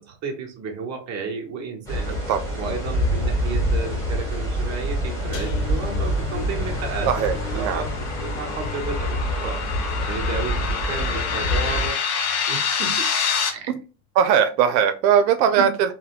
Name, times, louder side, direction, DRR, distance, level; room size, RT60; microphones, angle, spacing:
voice 1, 0.0-2.2 2.6-7.3 7.5-9.6 10.1-12.0 12.5-13.1 13.5-13.8 15.6-15.7, right 5 dB, 35° right, 1 dB, 0.9 m, -32 dB
sound 1, 1.9-11.9, equal, 5° left, 1.4 m, -26 dB
sound 2, 5.3-12.4 12.7-13.1 13.4-13.5, left 6 dB, 85° left, 0.8 m, -38 dB
sound 3, 5.8-13.5, left 6 dB, 35° left, 0.6 m, -28 dB
voice 2, 7.0-7.8 14.2-15.9, right 8 dB, 90° right, 8 dB, 0.6 m, -19 dB
3.5 x 2.1 x 2.4 m, 0.33 s
supercardioid pair, 140°, 50 cm